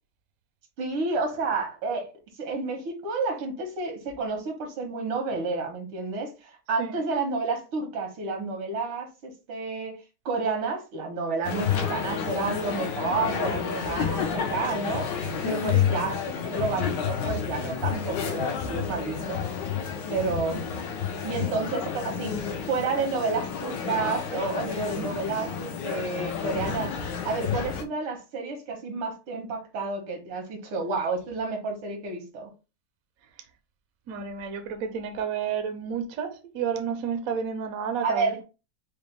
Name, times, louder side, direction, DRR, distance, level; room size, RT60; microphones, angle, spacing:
voice 1, 0.8-2.1 2.4-10.0 10.3-15.1 15.4-19.4 20.1-20.6 21.2-27.0 27.2-32.5 38.0-38.4, right 4 dB, 85° right, 2.1 m, -30 dB
sound 1, 11.4-27.8, left 7 dB, 65° left, 1.2 m, -30 dB
voice 2, 34.1-38.3, right 7 dB, 65° right, 0.9 m, -31 dB
5.0 x 2.2 x 3.3 m
omnidirectional pair, 2.3 m